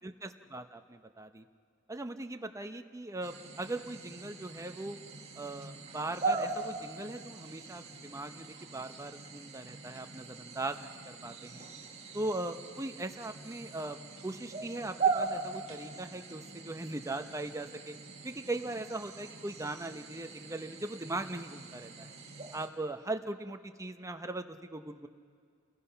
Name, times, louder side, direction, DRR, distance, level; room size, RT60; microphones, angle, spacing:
voice 1, 0.0-1.4 1.9-5.0 5.4-11.6 12.1-14.0 14.2-17.9 18.2-22.1 22.5-25.1, right 2 dB, 15° right, 7 dB, 0.8 m, -39 dB
sound 1, 3.2-22.7, right 4 dB, 35° right, 2.0 m, -40 dB
29.5 x 21.5 x 5.7 m, 2.1 s
head